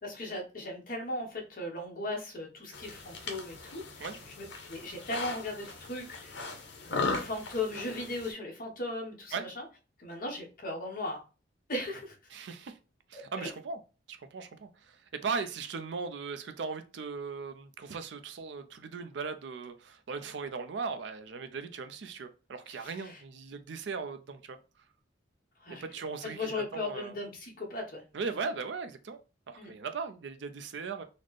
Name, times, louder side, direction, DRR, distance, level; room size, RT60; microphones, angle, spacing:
voice 1, 0.0-4.0 4.4-9.6 10.0-11.2 11.7-12.1 13.1-13.2 22.7-23.2 25.6-25.8 26.2-28.0 29.6-29.7, left 2 dB, 50° left, 1.1 m, -37 dB
sound 1, 2.7-8.3, left 3 dB, 75° left, 0.8 m, -38 dB
voice 2, 12.3-12.8 13.1-13.8 14.1-15.0 15.2-24.6 25.7-27.1 28.1-29.2 29.5-31.0, right 5 dB, 70° right, 0.4 m, -38 dB
4.1 x 2.0 x 3.1 m
head